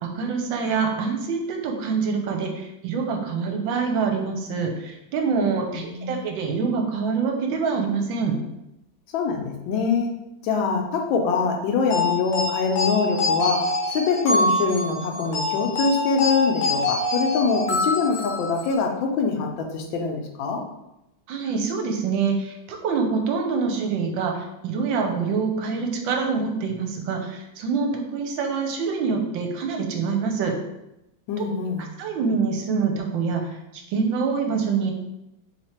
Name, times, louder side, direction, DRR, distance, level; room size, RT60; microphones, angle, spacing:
voice 1, 0.0-8.3 21.3-30.5 32.0-34.9, right 5 dB, 80° right, 3 dB, 1.4 m, -25 dB
voice 2, 5.7-6.2 9.1-10.1 10.4-20.6 31.3-31.8, left 5 dB, 85° left, 2 dB, 1.4 m, -24 dB
sound 1, 11.9-18.8, left 2 dB, 65° left, 1.3 m, -25 dB
3.4 x 3.3 x 4.2 m, 0.90 s
omnidirectional pair, 2.1 m